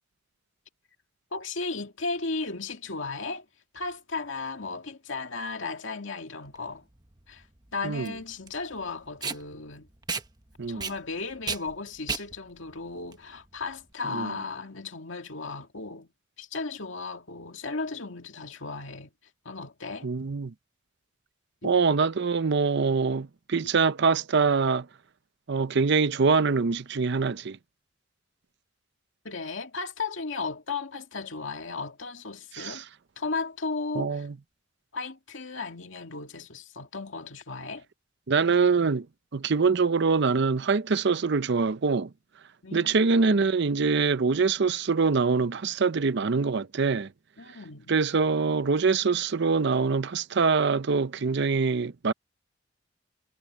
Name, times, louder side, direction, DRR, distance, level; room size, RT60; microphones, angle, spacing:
voice 1, 1.3-3.5 3.7-6.9 7.3-7.4 7.7-9.9 10.7-16.1 16.4-19.1 19.4-20.1 21.6-21.8 29.2-32.8 33.2-34.3 34.9-37.9 42.6-43.0 43.3-43.5 47.4-47.9, left 4 dB, 75° left, 2.3 m, -35 dB
Packing tape duct tape, 6.5-13.9, right 5 dB, 20° right, 1.1 m, -36 dB
voice 2, 10.6-10.9 14.1-14.3 20.0-20.5 21.6-24.9 25.5-27.6 32.5-32.8 34.0-34.3 38.3-39.1 39.3-42.1 42.7-47.1 47.9-52.1, right 4 dB, 60° right, 0.6 m, -24 dB
head